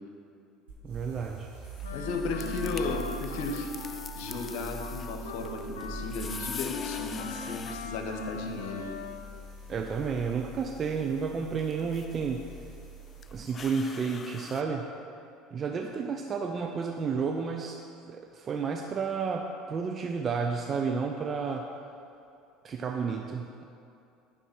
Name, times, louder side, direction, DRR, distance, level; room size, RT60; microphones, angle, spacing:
sound 1, 0.7-13.4, right 2 dB, 80° right, 2.0 m, -43 dB
voice 1, 0.8-1.5 9.7-12.5 13.3-14.9 15.5-17.8 18.1-21.7 22.6-23.5, right 5 dB, 40° right, 3 dB, 0.7 m, -31 dB
sound 2, 1.6-14.6, left 6 dB, 35° left, 0.4 m, -46 dB
Wind instrument woodwind instrument, 1.8-9.4, left 4 dB, 85° left, 0.9 m, -41 dB
voice 2, 1.9-8.8, left 3 dB, 65° left, 3 dB, 1.3 m, -35 dB
9.9 x 6.0 x 6.1 m, 2.6 s
hypercardioid pair, 75°, 0 cm